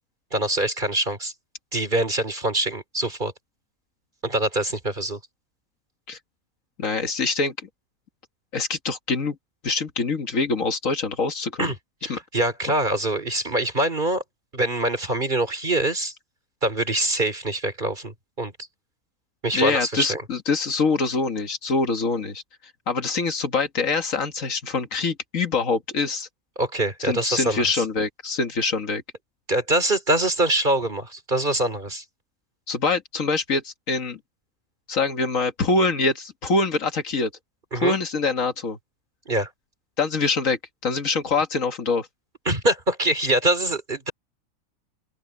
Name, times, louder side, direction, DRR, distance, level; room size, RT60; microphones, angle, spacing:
voice 1, 0.3-1.3 1.7-3.3 4.2-5.2 11.6-11.8 12.0-14.2 14.5-16.1 16.6-18.5 19.4-20.2 26.6-27.8 29.5-32.0 37.7-38.0 39.3-39.5 42.5-44.1, right 1 dB, 35° right, 3.5 m, -24 dB
voice 2, 6.8-7.5 8.5-9.4 9.6-11.7 12.1-12.2 19.5-22.4 22.9-26.3 27.0-29.0 32.7-34.2 34.9-37.3 37.8-38.8 40.0-42.1, left 4 dB, 65° left, 2.0 m, -24 dB
open air
omnidirectional pair, 1.5 m